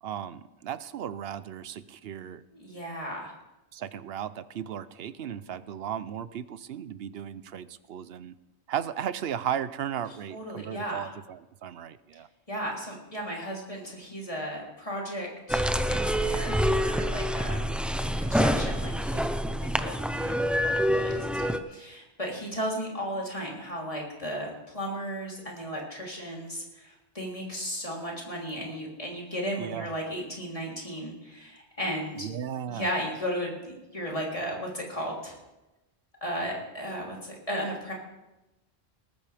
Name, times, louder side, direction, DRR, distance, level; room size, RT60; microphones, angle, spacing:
voice 1, 0.0-2.4 3.7-8.3 8.7-12.3 29.6-29.9 32.1-32.9, right 9 dB, 65° right, 15 dB, 0.9 m, -35 dB
voice 2, 2.5-3.3 10.3-11.1 12.5-17.8 18.2-19.3 19.6-20.4 20.9-32.3 32.7-35.4 36.2-37.9, equal, 30° left, -3 dB, 3.5 m, -35 dB
sound 1, 15.5-21.6, equal, ahead, 0.4 m, -26 dB
20.0 x 14.0 x 3.5 m, 1.0 s
omnidirectional pair, 1.1 m